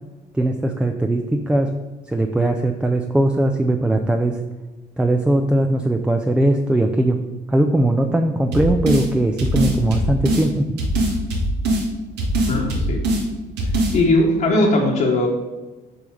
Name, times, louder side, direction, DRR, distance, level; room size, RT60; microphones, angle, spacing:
voice 1, 0.3-1.7 2.1-4.4 5.0-7.2 7.5-10.8, right 1 dB, 5° right, 5 dB, 0.5 m, -19 dB
sound 1, 8.5-9.1 9.4-10.5 10.8-11.8 12.2-13.2 13.6-13.9, right 1 dB, 85° right, 1.8 m, -21 dB
voice 2, 12.5-13.1 13.9-15.3, left 2 dB, 55° left, -4 dB, 1.4 m, -18 dB
6.9 x 5.6 x 5.0 m, 1.2 s
cardioid pair, 110°, 17 cm